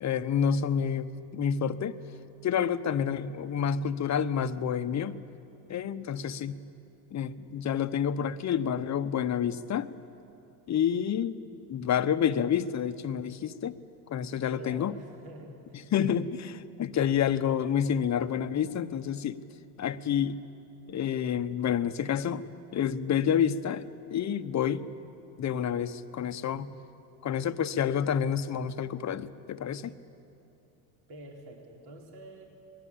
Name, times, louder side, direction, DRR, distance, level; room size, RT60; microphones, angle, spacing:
voice 1, 0.0-2.0 2.4-5.2 5.7-6.6 7.1-9.9 10.7-11.4 11.7-13.8 14.1-14.9 15.7-19.4 19.8-20.4 20.9-22.4 22.7-24.8 25.4-26.7 27.2-30.0, left 8 dB, 35° left, 12 dB, 1.0 m, -29 dB
voice 2, 14.6-15.9 31.1-32.4, right 1 dB, 55° right, 0 dB, 4.1 m, -47 dB
24.5 x 20.5 x 8.7 m, 2.7 s
supercardioid pair, 95°, 46 cm